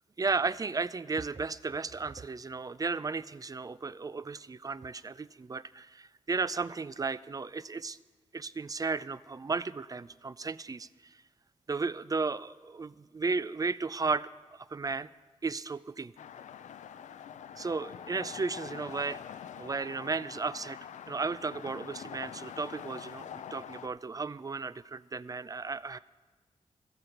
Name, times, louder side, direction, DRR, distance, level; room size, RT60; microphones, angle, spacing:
voice 1, 0.2-8.0 8.3-11.2 11.7-14.3 14.7-15.1 15.4-16.1 17.5-19.2 19.6-20.8 21.1-26.0, right 4 dB, 30° right, 17 dB, 0.4 m, -34 dB
sound 1, 16.2-23.9, left 9 dB, 80° left, 0.4 m, -45 dB
13.0 x 8.0 x 5.8 m, 1.4 s
cardioid pair, 60°, 12 cm